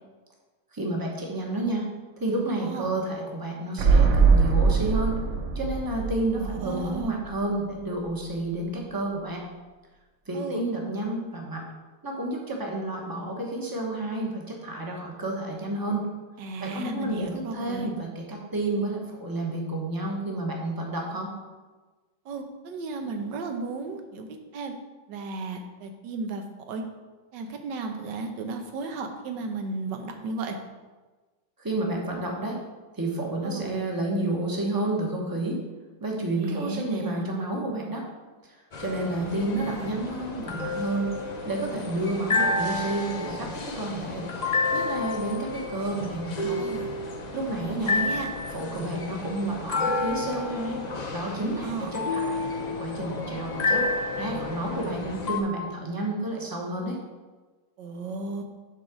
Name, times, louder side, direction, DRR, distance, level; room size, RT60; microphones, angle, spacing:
voice 1, 0.7-1.9 2.2-5.2 5.5-9.4 10.3-11.6 12.0-16.1 16.6-21.3 31.6-32.6 33.0-35.6 36.0-38.0 38.8-41.1 41.4-44.3 44.7-46.6 47.3-48.0 48.5-50.8 51.1-53.8 54.2-57.0, right 2 dB, 15° right, 0 dB, 0.9 m, -30 dB
voice 2, 2.6-2.9 6.3-7.2 10.3-10.6 16.4-17.9 22.2-24.3 24.5-24.7 25.1-26.8 27.3-30.6 33.4-33.7 36.4-37.3 39.0-39.9 46.6-46.9 47.6-48.3 51.6-51.9 57.8-58.4, right 3 dB, 80° right, 5 dB, 1.5 m, -34 dB
sound 1, 3.8-7.5 7.8-7.9, right 5 dB, 60° right, 0.8 m, -22 dB
sound 2, 38.7-55.4, left 3 dB, 60° left, 0.4 m, -30 dB
7.4 x 3.9 x 6.1 m, 1.3 s
omnidirectional pair, 1.9 m